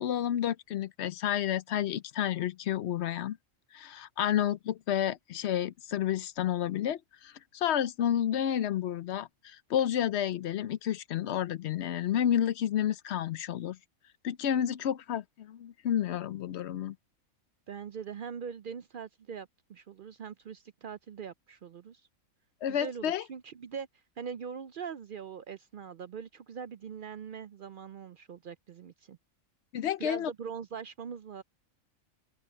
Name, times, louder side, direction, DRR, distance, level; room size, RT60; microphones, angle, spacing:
voice 1, 0.0-3.4 3.7-13.8 14.2-16.9 22.6-23.2 29.7-30.3, left 10 dB, 60° left, 0.8 m, -30 dB
voice 2, 17.7-22.0 22.7-23.9 24.2-29.2 30.0-31.4, right 7 dB, 65° right, 0.5 m, -42 dB
omnidirectional pair, 1.4 m